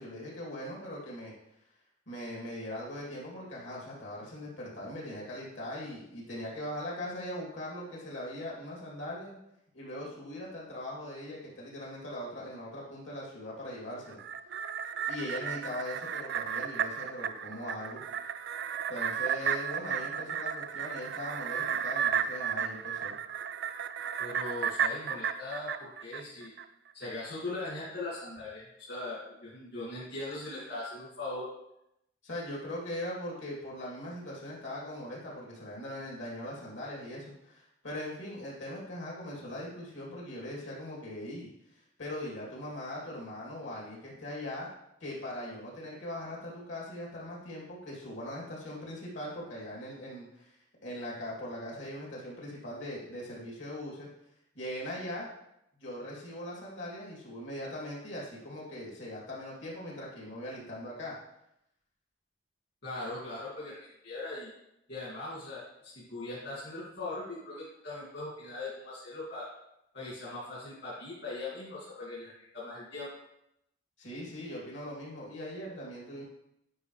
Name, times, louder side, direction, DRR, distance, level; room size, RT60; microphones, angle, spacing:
voice 1, 0.0-1.3 2.1-9.3 9.7-14.2 15.1-18.0 18.9-23.1 32.2-41.5 42.0-44.7 45.0-50.6 50.8-54.1 54.5-55.3 55.8-61.2 74.0-76.2, left 1 dB, 80° left, -4 dB, 2.8 m, -40 dB
sound 1, 14.1-26.6 27.0-27.1, right 8 dB, 60° right, 0.3 m, -34 dB
voice 2, 24.2-26.5 26.9-31.5 62.8-64.5 64.9-69.5 69.9-73.1, left 2 dB, 60° left, -7 dB, 2.3 m, -40 dB
9.4 x 5.2 x 3.3 m, 0.81 s
head